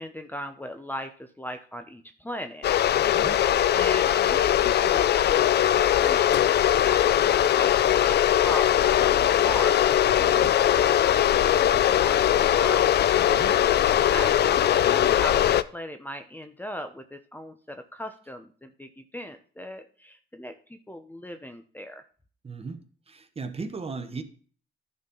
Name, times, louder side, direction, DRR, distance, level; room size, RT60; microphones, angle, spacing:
voice 1, 0.0-2.7 3.0-7.7 8.0-12.9 13.9-22.0, equal, 10° left, 0.8 m, -39 dB
sound 1, 2.6-15.6, left 11 dB, 55° left, 0.5 m, -21 dB
voice 2, 2.9-3.4 10.2-10.5 13.2-13.6 22.4-24.2, right 4 dB, 30° right, 1.2 m, -38 dB
11.0 x 4.4 x 5.4 m
cardioid pair, 90°, 20 cm